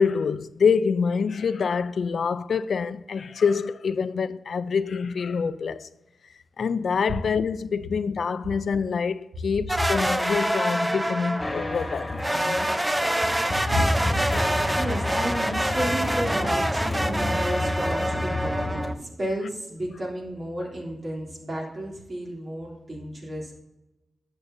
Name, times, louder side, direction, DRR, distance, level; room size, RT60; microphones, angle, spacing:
voice 1, 0.0-5.9 6.6-12.9 14.3-14.5, left 5 dB, 70° left, 0.3 m, -26 dB
sound 1, 9.7-11.6 12.2-18.9, right 1 dB, 10° right, 0.6 m, -26 dB
sound 2, 11.4-18.9, left 1 dB, 25° left, 1.6 m, -30 dB
voice 2, 14.7-23.6, equal, 50° right, 3.0 m, -32 dB
11.0 x 6.7 x 2.7 m
cardioid pair, 55°, 0 cm